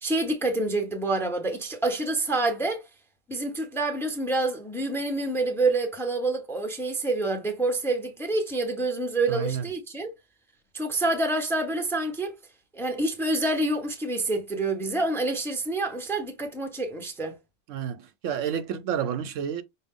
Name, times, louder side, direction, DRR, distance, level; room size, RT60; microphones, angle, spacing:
voice 1, 0.0-2.8 3.3-10.1 10.7-12.3 12.7-17.3, right 2 dB, ahead, 0.6 m, -27 dB
voice 2, 9.3-9.7 17.7-19.6, right 8 dB, 80° right, 1.0 m, -30 dB
5.5 x 2.1 x 3.6 m
omnidirectional pair, 1.3 m